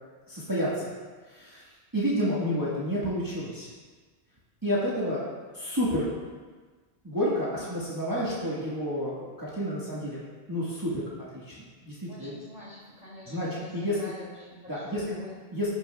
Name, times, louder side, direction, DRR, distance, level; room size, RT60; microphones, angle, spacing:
voice 1, 0.3-0.9 1.3-1.6 1.9-3.7 4.6-5.2 5.5-6.1 7.0-10.2 10.5-11.0 11.3-11.5 11.8-12.3 13.3-13.5 13.7-13.9 14.7-15.0 15.5-15.7, equal, 20° right, -8 dB, 1.3 m, -29 dB
voice 2, 7.5-7.9 12.1-15.3, left 1 dB, 35° left, -8 dB, 2.4 m, -46 dB
12.5 x 5.6 x 2.2 m, 1.4 s
omnidirectional pair, 1.1 m